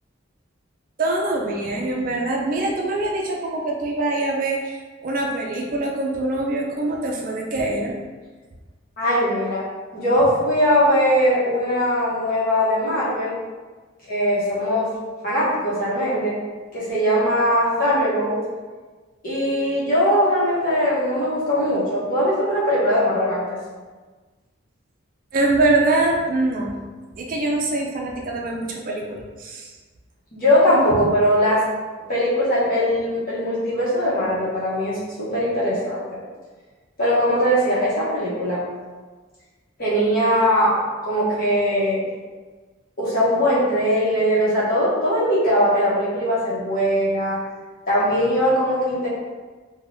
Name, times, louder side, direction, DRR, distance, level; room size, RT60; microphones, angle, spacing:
voice 1, 1.0-7.9 25.3-26.7 27.2-29.7 30.9-31.0, right 2 dB, 45° right, 0 dB, 0.4 m, -24 dB
voice 2, 9.0-9.6 9.9-13.4 14.1-14.9 15.2-16.4 16.7-18.4 19.2-23.6 30.3-31.6 32.1-36.0 37.0-38.6 39.8-42.0 43.0-47.4 47.9-49.1, equal, 45° left, -9 dB, 1.0 m, -20 dB
3.3 x 2.2 x 2.6 m, 1.4 s
head